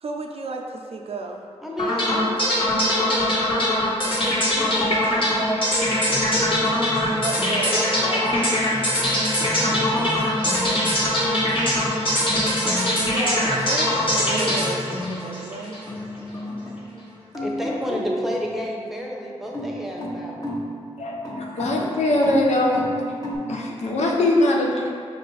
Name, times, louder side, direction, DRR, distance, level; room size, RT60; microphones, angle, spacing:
voice 1, 0.0-1.4 7.1-7.9 13.0-15.8, right 3 dB, 60° right, 2 dB, 0.5 m, -32 dB
voice 2, 1.6-5.3 7.7-8.3 17.4-20.4, equal, ahead, -2 dB, 0.8 m, -32 dB
sound 1, 1.8-15.9, left 1 dB, 50° left, 1.3 m, -22 dB
sound 2, 5.8-15.5 15.9-17.0 17.3-18.6 19.4-23.4, left 1 dB, 30° left, 0.9 m, -33 dB
voice 3, 21.0-22.8 23.5-24.9, left 1 dB, 75° left, -2 dB, 0.7 m, -21 dB
5.4 x 2.5 x 3.9 m, 2.2 s
cardioid pair, 60°, 12 cm